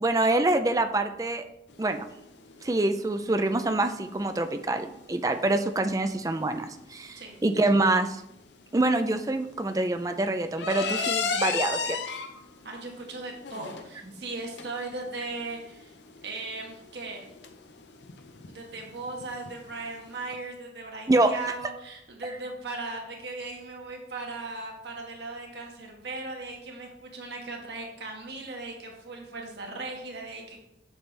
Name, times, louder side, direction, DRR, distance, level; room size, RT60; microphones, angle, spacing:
voice 1, 0.0-1.4 1.8-2.1 2.6-8.2 8.7-12.0 21.1-21.3, right 2 dB, 20° right, 8 dB, 0.4 m, -25 dB
sound 1, 1.7-20.3, left 5 dB, 90° left, 0.7 m, -37 dB
voice 2, 12.6-15.9 16.2-17.3 18.5-30.6, right 3 dB, 75° right, 1 dB, 1.4 m, -38 dB
7.2 x 7.1 x 3.3 m, 0.82 s
head